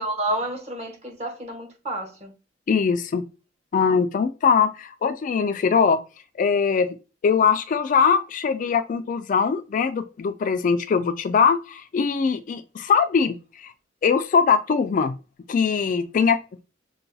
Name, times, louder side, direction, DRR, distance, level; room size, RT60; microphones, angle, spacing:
voice 1, 0.0-2.3, right 1 dB, 35° right, 1.1 m, -30 dB
voice 2, 2.7-3.2 3.7-6.0 6.4-7.0 7.2-13.7 14.0-15.2 15.5-16.6, left 6 dB, 45° left, 0.3 m, -21 dB
5.6 x 2.3 x 2.6 m
head